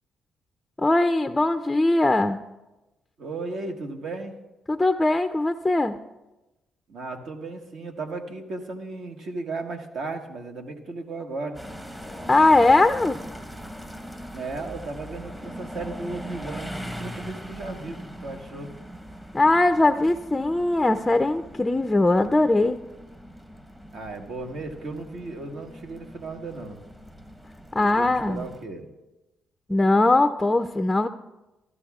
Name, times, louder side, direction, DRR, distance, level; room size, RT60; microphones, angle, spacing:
voice 1, 0.8-2.4 4.7-6.0 12.3-13.2 19.3-22.8 27.7-28.4 29.7-31.1, left 2 dB, 15° left, 8 dB, 0.4 m, -20 dB
voice 2, 3.2-4.4 6.9-11.7 14.3-18.7 23.9-26.8 27.8-28.9, right 3 dB, 70° right, 4 dB, 1.3 m, -35 dB
sound 1, 11.5-28.6, equal, 10° right, 0.9 m, -41 dB
15.0 x 12.5 x 2.3 m, 1.0 s
cardioid pair, 90°, 0 cm